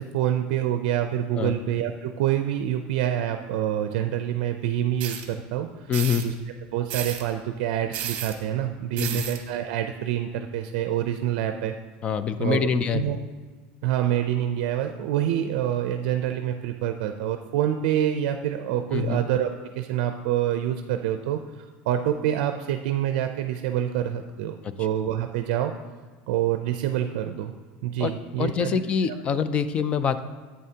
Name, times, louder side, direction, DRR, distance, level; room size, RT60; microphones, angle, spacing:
voice 1, 0.0-5.7 6.2-6.3 6.7-11.7 12.4-13.2 13.8-25.7 26.3-27.5 27.8-29.1, right 11 dB, 75° right, 6 dB, 0.5 m, -27 dB
sound 1, 5.0-5.2 5.9-6.2 6.9-7.2 7.9-8.3 9.0-9.4, right 10 dB, 45° right, 1.0 m, -32 dB
voice 2, 5.9-6.2 9.0-9.2 12.0-13.0 18.9-19.2 24.6-24.7 28.0-28.1 28.4-30.2, left 7 dB, 25° left, 13 dB, 0.4 m, -25 dB
11.0 x 8.5 x 2.8 m, 1.5 s
cardioid pair, 165°, 5 cm